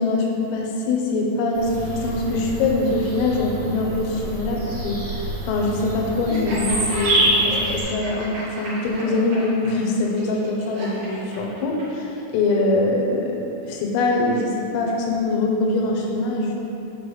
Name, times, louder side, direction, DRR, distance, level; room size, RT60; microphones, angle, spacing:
voice 1, 0.0-5.0 5.5-16.6, left 2 dB, 90° left, 0 dB, 3.5 m, -23 dB
Bird vocalization bird call bird song, 1.5-7.8, right 2 dB, 55° right, 2.8 m, -26 dB
Laughter, 6.3-12.0, right 1 dB, 80° right, 1.4 m, -33 dB
8.1 x 4.6 x 4.8 m, 2.9 s
omnidirectional pair, 5.7 m